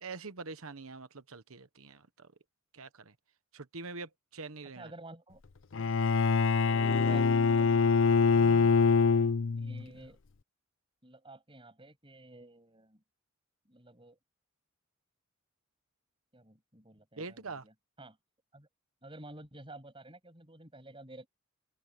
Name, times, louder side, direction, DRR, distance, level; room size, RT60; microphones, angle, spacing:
voice 1, 0.0-2.3 2.7-3.1 3.5-4.9 8.3-8.8 17.2-17.7, right 3 dB, 70° right, 1.2 m, -44 dB
voice 2, 4.8-5.4 6.7-7.7 9.5-10.2 11.0-13.0 13.6-14.2 16.3-18.2 18.5-18.7 19.0-21.3, right 2 dB, 25° right, 7.9 m, -51 dB
Bowed string instrument, 5.7-9.8, left 5 dB, 60° left, 0.6 m, -24 dB
head